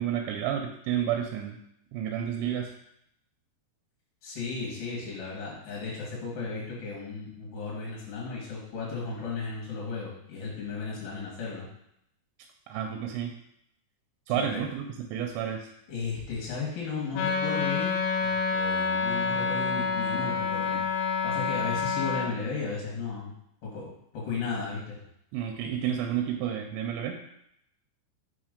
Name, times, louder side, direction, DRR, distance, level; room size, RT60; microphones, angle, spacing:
voice 1, 0.0-1.6 1.9-2.7 12.7-13.3 14.3-15.7 25.3-27.2, right 9 dB, 85° right, 4 dB, 2.8 m, -30 dB
voice 2, 4.2-11.7 14.3-14.6 15.9-17.9 18.2-20.9 21.2-23.3 23.6-25.0, left 4 dB, 60° left, -5 dB, 2.7 m, -35 dB
Wind instrument woodwind instrument, 17.1-22.3, left 5 dB, 85° left, 2.9 m, -28 dB
6.4 x 3.0 x 5.0 m, 0.76 s
omnidirectional pair, 5.1 m